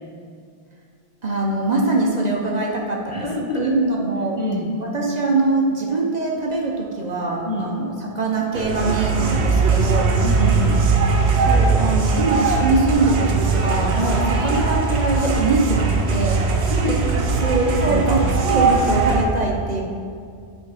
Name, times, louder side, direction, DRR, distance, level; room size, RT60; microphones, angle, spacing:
voice 1, 1.2-3.3 3.6-4.4 4.9-7.9 8.1-10.1 11.3-17.0 17.4-19.8, right 2 dB, 45° right, -1 dB, 0.8 m, -22 dB
voice 2, 3.1-3.8 4.4-4.7 7.4-7.7 10.2-10.8 14.0-14.2 16.7-17.1 17.9-18.1, left 1 dB, 35° left, -2 dB, 0.7 m, -26 dB
sound 1, 8.5-19.2, right 4 dB, 80° right, 1.0 m, -20 dB
9.8 x 3.4 x 4.9 m, 2.3 s
omnidirectional pair, 1.1 m